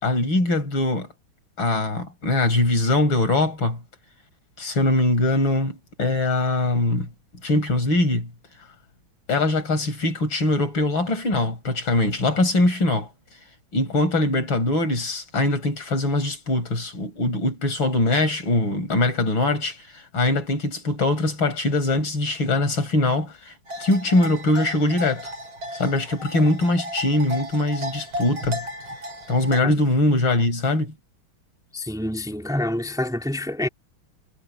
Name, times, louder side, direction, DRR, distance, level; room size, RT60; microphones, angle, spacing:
voice 1, 0.0-1.1 1.6-3.8 4.6-7.1 7.4-8.3 9.3-13.1 13.7-23.5 23.8-25.3 25.8-28.6 29.3-30.9, left 2 dB, 70° left, 5.8 m, -22 dB
sound 1, 23.7-29.6, equal, 85° right, 3.2 m, -34 dB
voice 2, 31.7-33.7, left 1 dB, ahead, 2.8 m, -27 dB
omnidirectional pair, 2.2 m